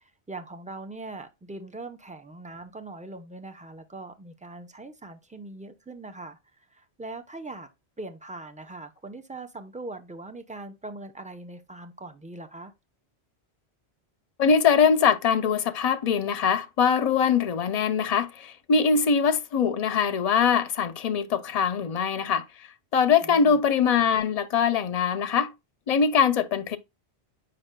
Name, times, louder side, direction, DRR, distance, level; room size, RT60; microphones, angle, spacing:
voice 1, 0.3-6.4 6.7-7.7 8.0-12.7 23.2-23.6, right 2 dB, 10° right, 0.6 m, -41 dB
voice 2, 14.4-22.4 22.9-25.5 25.9-26.8, left 6 dB, 45° left, 0.6 m, -22 dB
7.7 x 5.5 x 2.2 m
omnidirectional pair, 1.1 m